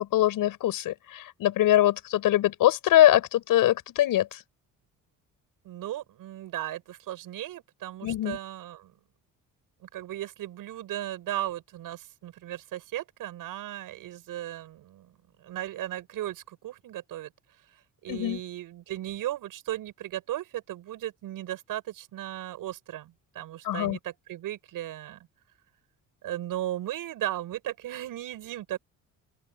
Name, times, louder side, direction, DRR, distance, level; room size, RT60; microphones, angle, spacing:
voice 1, 0.0-4.4 8.0-8.4 18.1-18.4 23.6-24.0, left 13 dB, 80° left, 7.9 m, -23 dB
voice 2, 5.6-8.9 9.8-17.3 18.0-25.3 26.2-28.8, right 13 dB, 80° right, 7.5 m, -36 dB
open air
cardioid pair, 130°, 33 cm